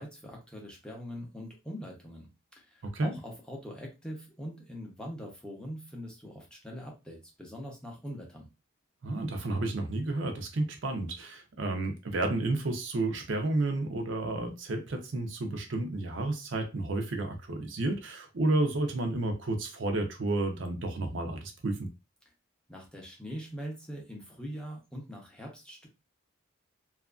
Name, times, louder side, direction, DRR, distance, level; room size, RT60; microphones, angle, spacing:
voice 1, 0.0-2.3 2.6-8.5 22.7-25.9, equal, 5° left, 0.6 m, -42 dB
voice 2, 2.8-3.2 9.0-21.9, right 2 dB, 60° right, 0.5 m, -31 dB
2.8 x 2.4 x 2.3 m
head